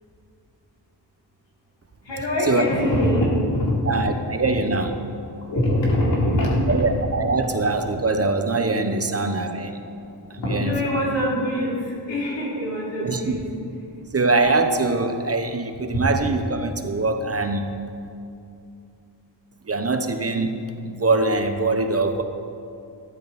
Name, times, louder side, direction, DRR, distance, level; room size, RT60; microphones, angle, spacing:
voice 1, 2.1-3.3 3.6-4.2 4.4-4.5 5.5-6.8 10.4-11.8 12.1-13.4, left 1 dB, 90° left, -5 dB, 3.8 m, -23 dB
voice 2, 3.8-5.0 6.7-9.8 10.3-10.8 13.0-13.4 14.1-17.7 19.7-22.2, right 3 dB, 35° right, 7 dB, 0.9 m, -23 dB
14.5 x 12.5 x 4.2 m, 2.5 s
wide cardioid pair, 95°, 43 cm